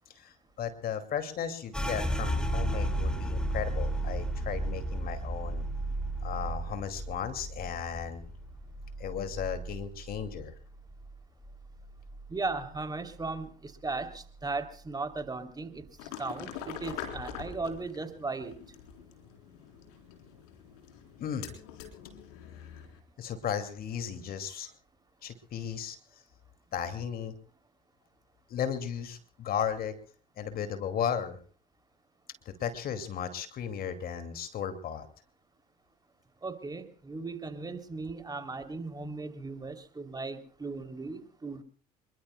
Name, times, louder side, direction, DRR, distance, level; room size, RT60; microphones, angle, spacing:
voice 1, 0.1-5.6 6.2-8.3 9.0-10.5 21.2-21.5 23.2-24.7 25.2-26.0 26.7-27.3 28.5-29.9 30.4-31.4 32.5-35.1, left 8 dB, 50° left, 9 dB, 2.4 m, -35 dB
sound 1, 1.7-11.1 11.4-12.7 13.0-13.5 13.9-14.5, right 1 dB, 5° left, 2.6 m, -34 dB
voice 2, 12.3-18.6 36.4-41.6, right 3 dB, 20° right, 7 dB, 3.1 m, -37 dB
sound 2, 16.0-23.0, left 8 dB, 75° left, 3.8 m, -44 dB
27.0 x 22.0 x 2.2 m, 0.43 s
hypercardioid pair, 65°, 19 cm